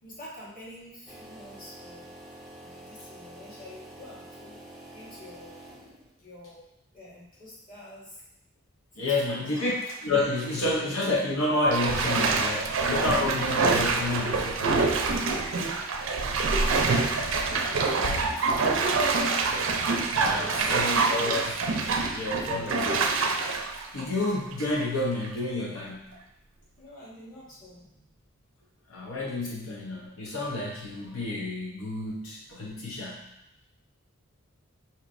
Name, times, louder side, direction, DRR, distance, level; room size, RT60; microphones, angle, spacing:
voice 1, 0.0-2.1 2.6-4.6 4.9-5.5 6.2-6.6 6.9-8.2 8.9-9.6 17.4-19.7 20.4-21.0 21.4-21.6 26.8-28.1 30.0-30.2, left 1 dB, 40° left, -8 dB, 1.4 m, -47 dB
sound 1, 1.1-6.2, right 1 dB, ahead, 0.5 m, -47 dB
voice 2, 9.0-9.7 10.0-14.6 18.0-18.2 20.1-21.6 22.1-23.2 23.9-26.1 28.9-33.2, left 2 dB, 85° left, -4 dB, 0.7 m, -29 dB
Bathtub (filling or washing), 9.5-10.0 10.4-10.5 11.7-24.8 25.2-25.3, right 4 dB, 65° right, 0.4 m, -26 dB
5.5 x 3.0 x 2.5 m, 0.84 s
head